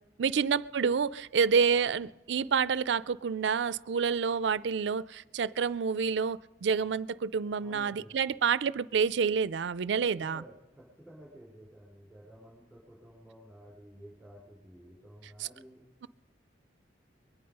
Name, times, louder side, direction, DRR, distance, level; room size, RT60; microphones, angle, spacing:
voice 1, 0.2-10.4 15.4-15.5, right 6 dB, 70° right, 0.4 m, -28 dB
voice 2, 7.6-8.1 10.0-15.8, equal, 5° left, 4.1 m, -52 dB
22.5 x 9.5 x 5.4 m
head